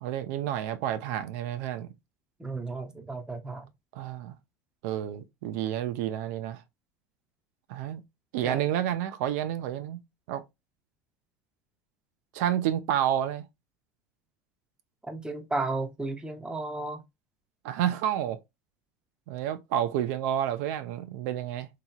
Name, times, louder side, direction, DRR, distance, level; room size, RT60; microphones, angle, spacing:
voice 1, 0.0-1.9 3.9-4.3 4.8-6.6 7.7-8.0 8.3-10.0 10.3-10.4 12.3-13.5 17.6-18.4 19.3-21.7, right 11 dB, 70° right, 0.4 m, -30 dB
voice 2, 2.4-3.7 8.4-8.7 15.0-17.0, right 2 dB, 10° right, 0.6 m, -34 dB
2.8 x 2.8 x 2.2 m
hypercardioid pair, 95°, 9 cm